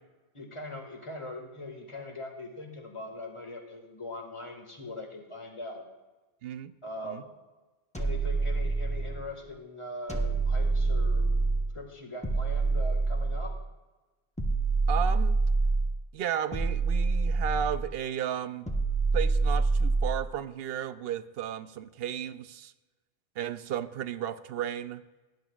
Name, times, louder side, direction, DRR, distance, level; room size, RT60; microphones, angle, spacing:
voice 1, 0.3-5.8 6.8-7.3 8.0-11.3 11.7-13.6, left 2 dB, 30° left, 2 dB, 1.8 m, -41 dB
sound 1, 7.9-9.3 10.1-11.7 12.2-13.6 14.4-16.0 16.5-17.9 18.7-20.3, right 3 dB, 5° left, 1.0 m, -26 dB
voice 2, 14.9-15.4 16.1-18.7 19.1-22.7 23.4-25.0, right 9 dB, 70° right, 14 dB, 0.7 m, -34 dB
18.0 x 10.5 x 2.4 m, 1.2 s
omnidirectional pair, 1.1 m